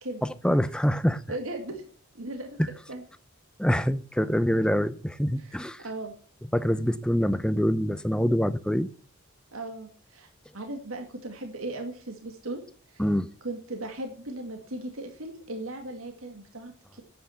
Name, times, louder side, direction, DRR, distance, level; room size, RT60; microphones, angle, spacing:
voice 1, 0.2-1.4 2.6-2.7 3.6-5.8 6.4-8.9 13.0-13.3, equal, 5° left, 0.6 m, -25 dB
voice 2, 1.3-1.9 2.1-2.6 2.9-3.0 5.4-6.1 9.5-10.3 10.5-12.6 12.9-13.1 13.4-17.0, right 2 dB, 80° right, 2.0 m, -37 dB
9.7 x 8.8 x 7.0 m
head